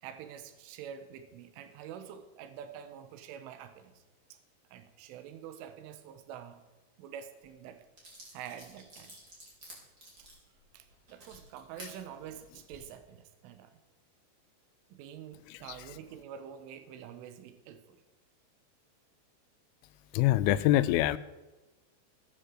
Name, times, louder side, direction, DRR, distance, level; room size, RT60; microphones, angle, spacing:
voice 1, 0.0-3.9 4.3-4.4 4.7-6.6 7.0-7.8 8.3-9.1 10.2-10.3 10.7-13.8 14.9-18.0, right 9 dB, 80° right, 8 dB, 3.7 m, -47 dB
sound 1, 7.4-7.5 8.0-11.9 12.5-12.8, right 1 dB, 20° right, 5.6 m, -51 dB
voice 2, 20.1-21.2, left 14 dB, 90° left, 15 dB, 3.3 m, -24 dB
18.5 x 10.0 x 7.8 m, 1.1 s
omnidirectional pair, 5.7 m